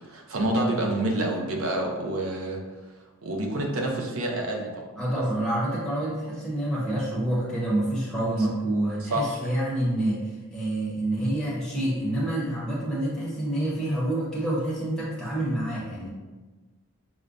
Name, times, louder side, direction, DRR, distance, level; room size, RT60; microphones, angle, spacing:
voice 1, 0.1-2.6 3.2-4.8 5.1-5.2 9.0-9.4, right 1 dB, 65° right, 0 dB, 0.6 m, -27 dB
voice 2, 5.0-16.1, right 1 dB, ahead, -8 dB, 0.7 m, -27 dB
4.9 x 2.1 x 2.5 m, 1.2 s
head